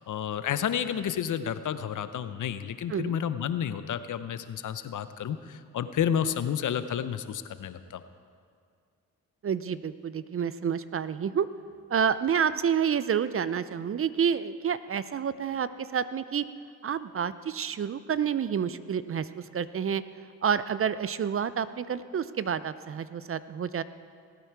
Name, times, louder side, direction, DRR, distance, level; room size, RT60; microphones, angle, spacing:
voice 1, 0.1-8.0, left 9 dB, 55° left, 12 dB, 0.8 m, -31 dB
voice 2, 9.4-11.5 11.9-16.5 16.8-20.0 20.4-23.8, right 7 dB, 40° right, 14 dB, 0.5 m, -29 dB
18.5 x 9.3 x 4.7 m, 2.1 s
supercardioid pair, 60°, 36 cm